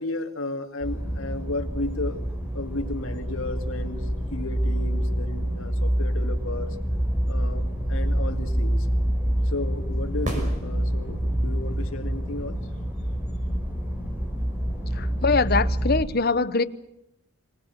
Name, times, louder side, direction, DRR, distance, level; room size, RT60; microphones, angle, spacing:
voice 1, 0.0-2.2 2.5-6.8 7.3-7.6 7.9-8.9 9.4-12.6, left 2 dB, 75° left, 2.2 m, -33 dB
sound 1, 0.8-16.0, equal, 10° right, 4.9 m, -27 dB
sound 2, 10.2-11.4 15.2-15.3, equal, 35° right, 5.9 m, -33 dB
voice 2, 15.0-16.6, left 4 dB, 45° left, 0.9 m, -23 dB
25.5 x 18.5 x 8.1 m
head